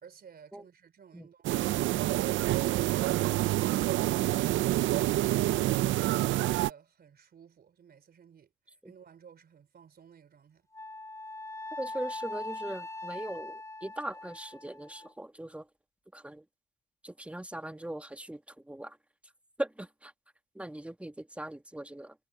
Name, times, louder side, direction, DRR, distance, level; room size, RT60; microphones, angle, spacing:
voice 1, 0.0-4.3 4.9-10.7, right 7 dB, 50° right, 3.8 m, -56 dB
sound 1, 1.4-6.7, right 15 dB, 75° right, 0.4 m, -27 dB
Wind instrument woodwind instrument, 10.7-15.1, left 2 dB, 15° left, 4.0 m, -41 dB
voice 2, 11.8-15.6 16.1-16.4 17.0-19.0 19.6-20.1 20.5-22.1, right 1 dB, 5° right, 1.4 m, -40 dB
cardioid pair, 90°, 20 cm